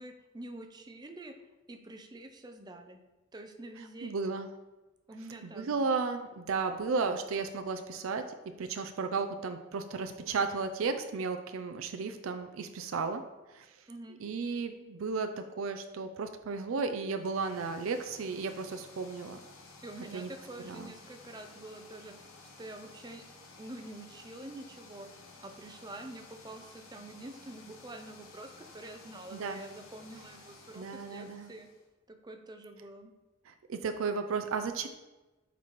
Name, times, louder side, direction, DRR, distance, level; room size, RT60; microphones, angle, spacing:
voice 1, 0.0-1.3 1.7-3.0 3.3-4.3 5.1-5.9 13.9-14.2 19.8-22.1 22.6-23.2 23.6-25.1 25.4-31.7 32.1-33.1, right 1 dB, 20° right, 6 dB, 0.5 m, -47 dB
voice 2, 4.0-4.5 5.4-8.3 8.6-13.2 13.5-13.7 14.2-19.4 20.1-20.3 20.6-20.9 29.3-29.6 30.7-31.5 33.5-34.9, right 4 dB, 75° right, 7 dB, 0.4 m, -34 dB
sound 1, 17.2-31.8, left 3 dB, 70° left, 1.1 m, -54 dB
8.5 x 4.0 x 3.1 m, 1.1 s
head